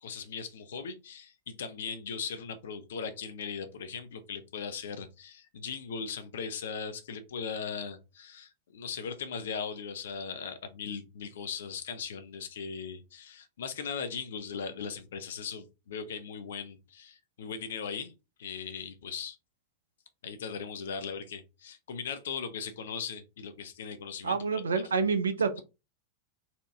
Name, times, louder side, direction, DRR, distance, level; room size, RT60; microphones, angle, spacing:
voice 1, 0.0-18.1 18.4-19.4 20.2-24.6, left 6 dB, 60° left, 0.8 m, -39 dB
voice 2, 24.2-25.6, right 5 dB, 70° right, 0.6 m, -28 dB
4.4 x 2.8 x 3.6 m
figure-of-eight pair, 90°, 0 cm